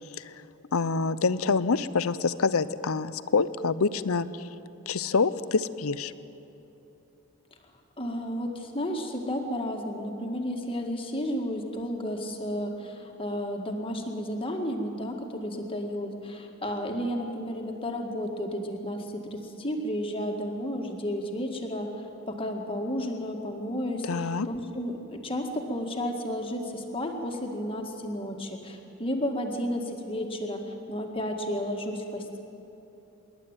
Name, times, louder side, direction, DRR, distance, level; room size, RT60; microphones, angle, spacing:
voice 1, 0.7-4.5 4.9-6.1 24.0-24.5, left 4 dB, 70° left, 15 dB, 0.6 m, -26 dB
voice 2, 8.0-32.4, equal, 25° left, 3 dB, 1.9 m, -32 dB
26.5 x 11.5 x 9.0 m, 2.9 s
head